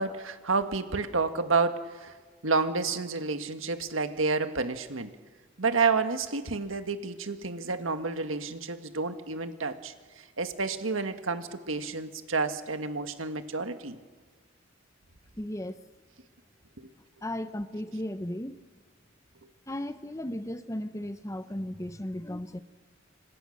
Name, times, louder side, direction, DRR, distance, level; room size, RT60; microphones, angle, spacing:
voice 1, 0.0-2.1 2.4-5.1 5.6-14.0 16.8-16.9, right 4 dB, 80° right, 1.7 m, -30 dB
voice 2, 15.4-15.8 17.2-18.6 19.7-22.6, left 1 dB, 15° left, 0.8 m, -35 dB
28.0 x 25.5 x 6.6 m
head